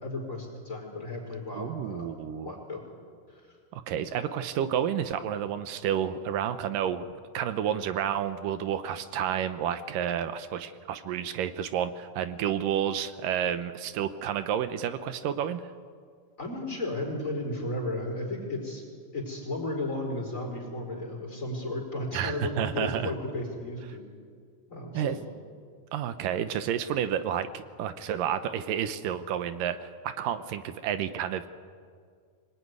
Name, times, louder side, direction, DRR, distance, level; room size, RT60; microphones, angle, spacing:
voice 1, 0.0-2.1 2.4-2.8 3.3-3.4 16.4-18.8 19.1-24.0 24.7-25.2, left 1 dB, 20° left, 0 dB, 4.7 m, -34 dB
voice 2, 1.5-2.6 3.7-15.6 22.1-23.1 24.9-25.2 25.9-31.5, right 9 dB, 75° right, 11 dB, 2.3 m, -30 dB
24.5 x 20.0 x 9.6 m, 2.1 s
omnidirectional pair, 4.3 m